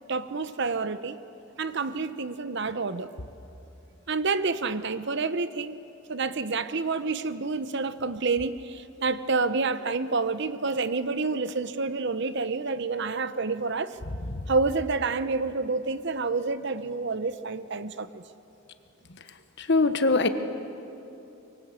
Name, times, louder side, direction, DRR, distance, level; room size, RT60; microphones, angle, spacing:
voice 1, 0.1-1.2 1.6-3.1 4.1-5.8 6.1-14.0 14.5-18.2, right 4 dB, 60° right, 13 dB, 0.9 m, -28 dB
voice 2, 19.7-20.3, left 3 dB, 60° left, 9 dB, 1.3 m, -21 dB
24.5 x 23.5 x 8.2 m, 2.8 s
head